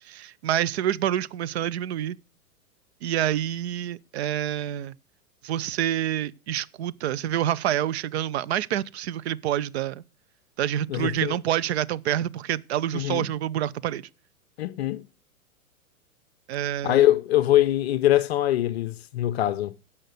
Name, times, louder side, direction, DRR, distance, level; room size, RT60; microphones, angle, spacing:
voice 1, 0.0-2.2 3.0-4.9 5.4-10.0 10.6-14.0 16.5-17.0, right 11 dB, 50° right, 0.6 m, -27 dB
voice 2, 10.9-11.4 12.9-13.3 14.6-15.0 16.8-19.7, left 14 dB, 45° left, 0.6 m, -23 dB
15.0 x 5.7 x 6.5 m
figure-of-eight pair, 110°, 43 cm